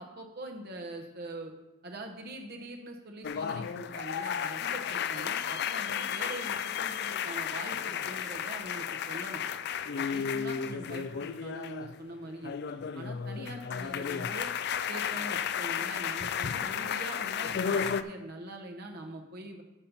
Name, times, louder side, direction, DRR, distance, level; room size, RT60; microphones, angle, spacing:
voice 1, 0.0-1.5 1.8-9.4 10.0-12.6 12.9-14.5 14.9-19.6, right 1 dB, 50° right, 2 dB, 0.9 m, -43 dB
sound 1, 3.2-12.0 12.3-18.0, left 7 dB, 50° left, 0.4 m, -33 dB
9.0 x 5.5 x 5.9 m, 1.0 s
head